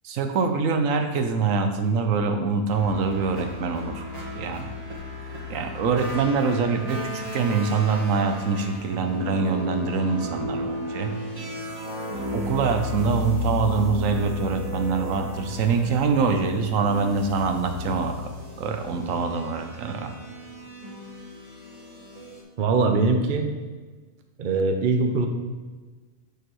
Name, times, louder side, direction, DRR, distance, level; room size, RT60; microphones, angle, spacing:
voice 1, 0.0-4.0 4.3-4.7 5.5-11.1 12.3-18.1 18.6-20.1, right 5 dB, 75° right, 6 dB, 1.0 m, -24 dB
sound 1, 2.7-22.4, left 2 dB, 30° right, 1.3 m, -34 dB
voice 2, 22.6-23.5 24.4-25.3, right 3 dB, 45° right, 4 dB, 0.7 m, -22 dB
6.9 x 6.6 x 3.1 m, 1.3 s
omnidirectional pair, 1.4 m